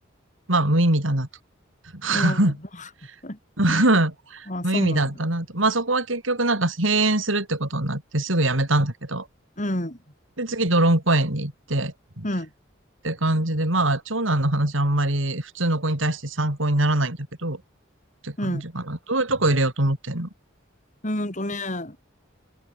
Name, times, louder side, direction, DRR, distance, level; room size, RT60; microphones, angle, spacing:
voice 1, 0.5-1.3 1.9-2.6 3.6-9.3 10.4-12.3 13.0-17.6 18.2-20.3, right 2 dB, 75° right, 4.2 m, -23 dB
voice 2, 4.5-5.1 9.6-10.0 12.2-12.5 18.4-18.6 21.0-22.0, left 1 dB, 40° left, 7.3 m, -29 dB
open air
head